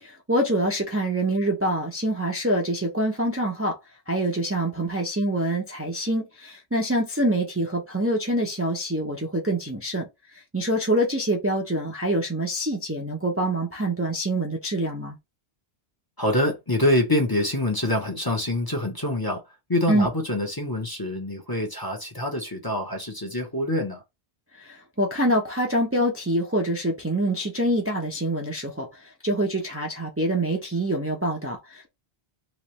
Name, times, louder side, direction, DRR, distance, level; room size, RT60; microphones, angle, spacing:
voice 1, 0.0-3.8 4.1-10.1 10.5-15.2 19.9-20.1 24.6-31.9, right 1 dB, 15° right, 0.7 m, -25 dB
voice 2, 16.2-19.4 19.7-24.0, left 1 dB, 20° left, 0.9 m, -25 dB
3.2 x 3.1 x 3.2 m
omnidirectional pair, 1.1 m